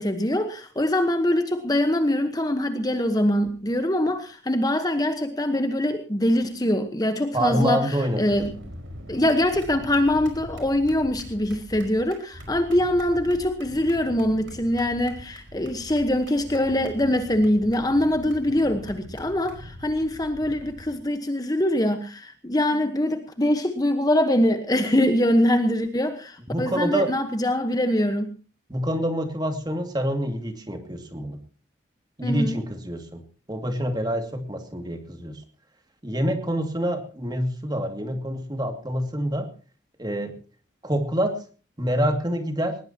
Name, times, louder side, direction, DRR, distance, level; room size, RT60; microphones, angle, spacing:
voice 1, 0.0-8.5 9.1-28.3 32.2-32.6, left 1 dB, 20° left, 8 dB, 1.2 m, -23 dB
voice 2, 7.3-8.2 26.5-27.1 28.7-31.4 32.2-33.2 33.5-35.4 36.0-39.5 40.0-40.4 40.8-41.4 41.8-42.8, equal, 20° right, 5 dB, 2.4 m, -26 dB
sound 1, 8.3-21.0, equal, 85° right, 4.9 m, -42 dB
20.5 x 19.5 x 2.9 m, 0.38 s
head